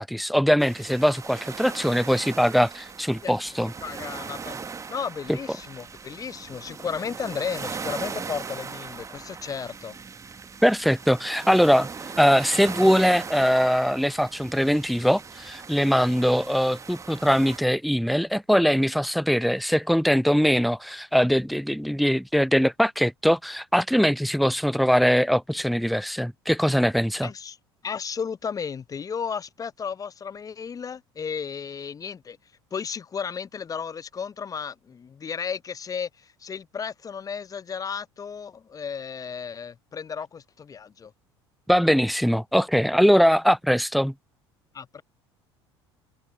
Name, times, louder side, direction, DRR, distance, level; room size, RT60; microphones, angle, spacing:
voice 1, 0.0-3.7 10.6-11.9 12.2-27.3 41.7-44.1, equal, ahead, 0.7 m, -21 dB
sound 1, 0.6-17.6, right 5 dB, 20° right, 1.7 m, -39 dB
voice 2, 3.8-10.0 27.2-27.6 27.8-32.4 32.7-41.1 44.7-45.0, left 6 dB, 25° left, 0.9 m, -34 dB
figure-of-eight pair, 65°, 14 cm